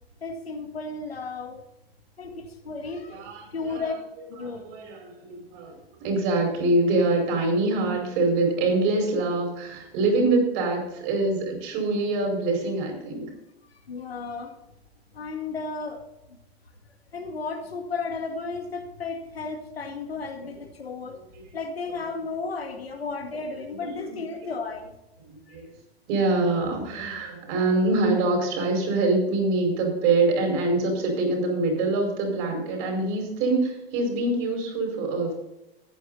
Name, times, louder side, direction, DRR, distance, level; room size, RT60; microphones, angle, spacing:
voice 1, 0.2-1.6 2.2-3.2 3.5-3.9 4.3-4.7 13.9-14.5 15.1-16.0 16.3-16.4 17.1-21.2 21.5-24.9 25.5-25.6, left 4 dB, 80° left, 6 dB, 1.8 m, -34 dB
voice 2, 3.1-3.9 4.4-13.3 21.4-21.6 23.7-24.2 25.2-25.7 26.1-35.3, right 2 dB, 50° right, 2 dB, 5.2 m, -25 dB
14.0 x 9.6 x 4.1 m, 0.92 s
figure-of-eight pair, 90°, 30 cm